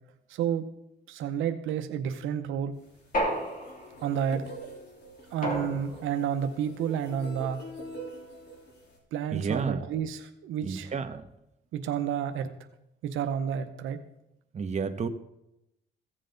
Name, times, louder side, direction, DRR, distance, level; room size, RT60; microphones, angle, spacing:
voice 1, 0.3-0.6 1.1-2.8 4.0-4.7 5.3-7.6 9.1-10.9 11.7-12.5 13.0-14.0, right 8 dB, 85° right, 7 dB, 0.8 m, -30 dB
sound 1, 2.8-9.0, equal, 60° left, 3.6 m, -45 dB
sound 2, 3.1-4.1 5.4-6.3, equal, 45° left, 2.8 m, -32 dB
voice 2, 9.3-9.8 10.6-11.2 14.5-15.1, right 5 dB, 35° right, 7 dB, 1.1 m, -31 dB
15.5 x 7.7 x 3.9 m, 0.85 s
cardioid pair, 90°, 20 cm